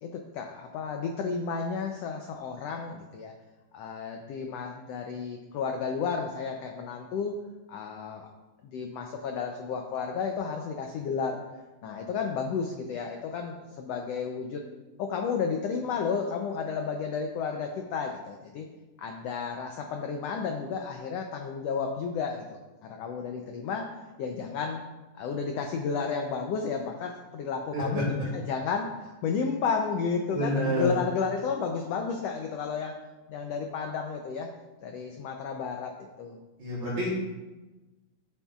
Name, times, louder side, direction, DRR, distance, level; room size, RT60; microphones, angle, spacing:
voice 1, 0.0-3.3 3.7-7.4 7.7-8.3 8.6-11.4 11.8-14.6 15.0-18.7 19.0-22.4 22.8-23.9 24.2-24.8 25.1-33.0 33.3-34.5 34.8-36.4, left 5 dB, 90° left, 3 dB, 1.4 m, -32 dB
voice 2, 27.7-28.0 30.3-31.0 36.6-37.1, equal, 65° right, -7 dB, 3.7 m, -28 dB
12.0 x 7.1 x 2.4 m, 1.1 s
omnidirectional pair, 3.6 m